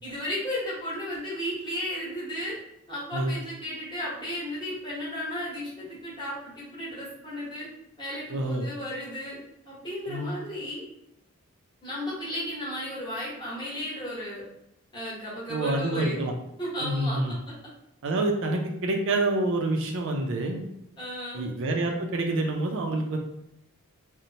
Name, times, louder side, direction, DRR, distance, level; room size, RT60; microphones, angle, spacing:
voice 1, 0.0-2.6 2.9-7.7 8.0-9.4 9.6-10.8 11.8-14.4 14.9-16.2 16.6-17.4 21.0-21.5, equal, 20° left, -7 dB, 0.9 m, -34 dB
voice 2, 8.3-8.7 10.1-10.3 15.5-16.3 16.8-17.4 18.0-20.6 21.3-23.2, right 2 dB, 60° right, 2 dB, 0.4 m, -27 dB
2.9 x 2.0 x 2.7 m, 0.81 s
head